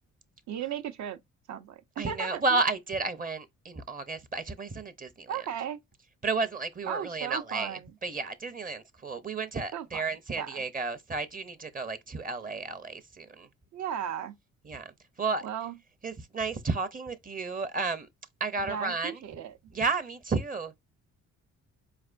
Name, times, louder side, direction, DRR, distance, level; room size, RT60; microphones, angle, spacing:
voice 1, 0.5-1.2 1.5-2.6 5.3-5.8 6.9-7.9 9.7-10.0 10.4-10.6 13.7-14.3 15.4-15.8 18.6-19.5, right 8 dB, 70° right, 0.7 m, -36 dB
voice 2, 2.0-5.3 6.2-13.5 14.6-15.5 16.0-18.1 18.4-19.2 19.7-20.8, right 4 dB, 30° right, 0.6 m, -32 dB
4.4 x 3.3 x 2.5 m
cardioid pair, 90°, 30 cm